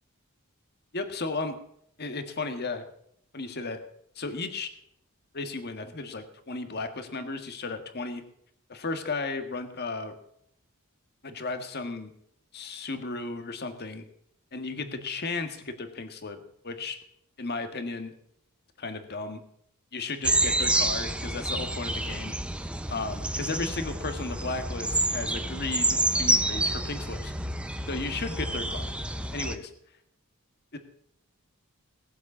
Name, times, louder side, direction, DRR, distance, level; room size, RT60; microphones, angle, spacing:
voice 1, 0.9-1.6 2.0-2.8 3.3-3.8 4.1-4.7 5.3-8.2 8.7-10.1 11.2-12.1 12.5-14.0 14.5-17.0 17.4-18.1 18.8-19.4 19.9-22.3 22.9-27.3 27.9-28.9 29.3-29.7 30.7-30.8, left 3 dB, 50° left, 8 dB, 1.6 m, -34 dB
sound 1, 20.2-29.6, right 1 dB, 5° right, 0.7 m, -28 dB
18.5 x 7.9 x 7.2 m, 0.71 s
head